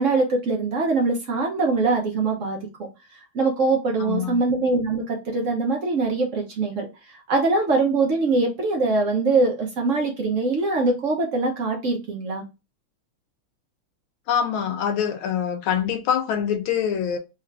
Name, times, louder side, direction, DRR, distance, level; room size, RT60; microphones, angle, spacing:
voice 1, 0.0-2.9 3.3-12.4, right 3 dB, 60° right, 0.8 m, -23 dB
voice 2, 4.0-4.4 14.3-17.2, left 8 dB, 75° left, 1.5 m, -24 dB
4.4 x 2.5 x 3.2 m
omnidirectional pair, 2.4 m